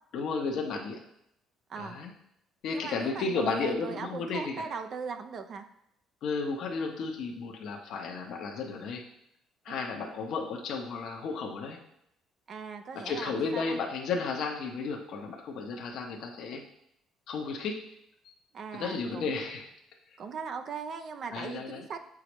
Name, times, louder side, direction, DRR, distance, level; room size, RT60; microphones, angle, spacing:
voice 1, 0.1-1.0 1.8-2.1 2.6-4.7 6.2-9.0 9.6-11.8 12.9-16.6 17.3-17.8 18.7-19.7 20.1-20.2 21.3-21.8, left 4 dB, 60° left, 1 dB, 0.9 m, -33 dB
voice 2, 2.7-5.6 9.7-9.8 12.5-13.8 18.5-19.4 20.2-22.1, right 5 dB, 45° right, 7 dB, 0.5 m, -39 dB
7.4 x 4.8 x 3.1 m, 0.75 s
cardioid pair, 140°, 0 cm